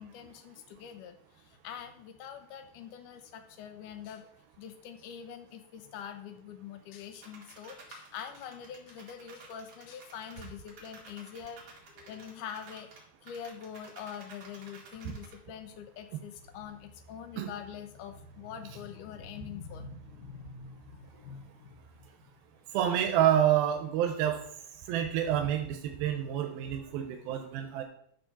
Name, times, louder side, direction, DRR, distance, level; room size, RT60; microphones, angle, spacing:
voice 1, 0.0-4.3 4.6-11.6 11.9-12.9 13.2-22.3, left 8 dB, 70° left, 7 dB, 2.2 m, -44 dB
sound 1, 7.2-15.3, right 3 dB, 55° right, 3.2 m, -52 dB
voice 2, 22.7-24.4 24.9-27.8, right 10 dB, 90° right, 4 dB, 2.6 m, -28 dB
11.5 x 4.3 x 5.9 m, 0.68 s
omnidirectional pair, 4.3 m